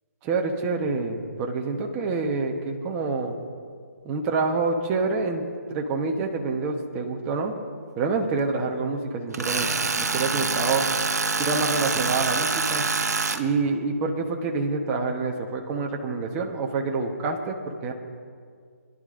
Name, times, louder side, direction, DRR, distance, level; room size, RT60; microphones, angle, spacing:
voice 1, 0.2-3.3 4.0-7.5 8.0-10.8 11.4-12.9 13.3-17.9, right 4 dB, 20° right, 2 dB, 0.9 m, -27 dB
Tools, 9.3-13.4, right 4 dB, 85° right, 0.9 m, -25 dB
25.0 x 11.0 x 2.5 m, 2.1 s
hypercardioid pair, 155°, 9 cm